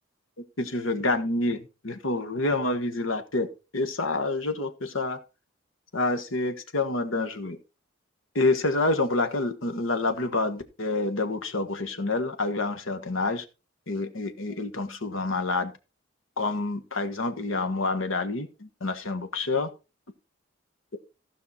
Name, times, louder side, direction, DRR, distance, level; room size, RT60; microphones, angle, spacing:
voice 1, 0.6-3.5 3.7-5.2 5.9-7.6 8.3-13.4 13.9-15.7 16.4-19.7, left 2 dB, 90° left, 7 dB, 1.4 m, -28 dB
15.0 x 5.7 x 4.2 m, 0.30 s
head